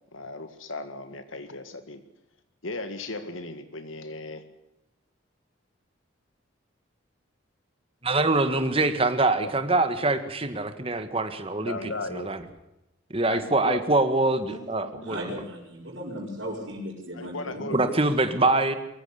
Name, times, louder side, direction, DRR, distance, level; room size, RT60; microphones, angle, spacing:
voice 1, 0.1-2.0 2.6-4.4 9.4-9.5 11.6-12.3 13.3-13.8 14.5-15.2 17.1-18.0, left 2 dB, 80° left, 9 dB, 2.0 m, -36 dB
voice 2, 8.0-11.8 12.1-12.4 13.1-15.3 17.7-18.8, right 2 dB, 30° right, 9 dB, 1.7 m, -24 dB
voice 3, 15.0-18.1, equal, 65° right, -6 dB, 5.4 m, -36 dB
23.0 x 14.5 x 8.2 m, 0.90 s
head